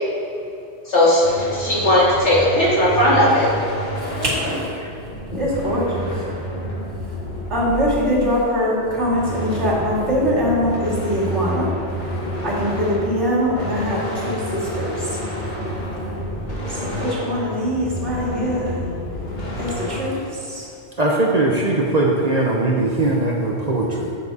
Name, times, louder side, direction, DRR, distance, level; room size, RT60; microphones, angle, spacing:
voice 1, 0.9-3.5 5.3-5.4, left 1 dB, 70° left, -7 dB, 2.5 m, -17 dB
sound 1, 1.2-8.4 8.8-20.0, equal, 40° left, 1.6 m, -29 dB
voice 2, 4.0-4.7 5.3-6.2 7.5-11.7 11.9-12.1 12.4-15.2 16.7-18.8 19.6-20.7, equal, 70° right, -7 dB, 2.7 m, -23 dB
voice 3, 21.0-24.1, right 2 dB, 40° right, -2 dB, 0.9 m, -20 dB
9.1 x 7.0 x 4.1 m, 2.5 s
omnidirectional pair, 1.2 m